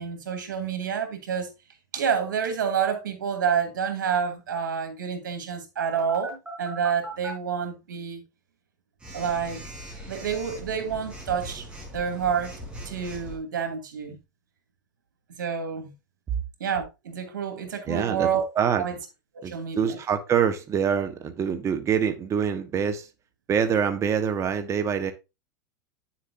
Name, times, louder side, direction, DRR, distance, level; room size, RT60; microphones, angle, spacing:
voice 1, 0.0-1.5 1.9-8.2 9.1-9.6 10.1-11.7 11.9-12.5 12.9-14.2 15.3-15.9 16.6-18.4 18.8-19.0 19.3-20.0, right 7 dB, 90° right, 2.4 m, -28 dB
Telephone, 5.9-7.3 9.0-13.4, right 1 dB, 10° right, 4.3 m, -40 dB
voice 2, 17.9-18.3 18.5-18.8 19.4-23.1 23.5-25.1, right 7 dB, 30° right, 1.4 m, -25 dB
9.3 x 7.3 x 2.7 m
hypercardioid pair, 120°, 10 cm